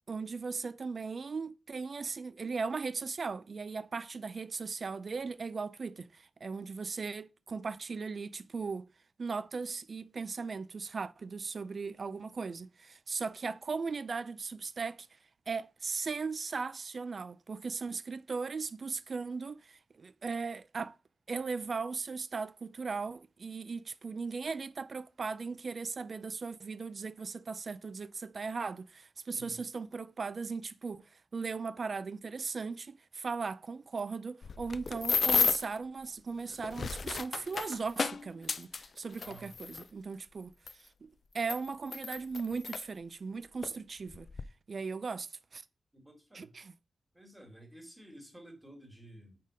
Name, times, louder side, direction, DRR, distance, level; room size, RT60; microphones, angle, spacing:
voice 1, 0.1-8.9 9.2-15.2 15.5-21.0 21.3-44.3 44.7-45.6 46.3-46.7, right 4 dB, 50° right, 0.4 m, -38 dB
voice 2, 29.3-29.7 39.2-39.5 45.9-46.5 47.1-49.4, right 1 dB, 10° right, 2.1 m, -53 dB
sound 1, 34.4-35.8 36.5-39.8 40.7-40.8 41.4-42.8 43.6-43.8 44.1-44.4, left 5 dB, 55° left, 0.3 m, -32 dB
5.3 x 4.3 x 4.9 m
wide cardioid pair, 120°, 0 cm